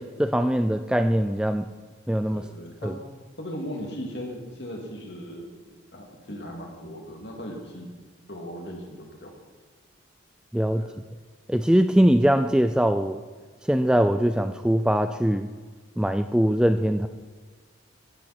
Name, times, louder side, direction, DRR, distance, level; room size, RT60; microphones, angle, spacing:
voice 1, 0.0-1.7 2.1-2.4 2.8-2.9 10.5-10.9 11.5-13.2 13.7-15.5 16.0-17.1, equal, 5° right, 8 dB, 0.3 m, -22 dB
voice 2, 2.1-3.0 3.4-5.5 5.9-7.9 8.3-9.3 10.7-11.0, equal, 55° left, 1 dB, 2.6 m, -38 dB
14.5 x 11.0 x 4.4 m, 1.4 s
head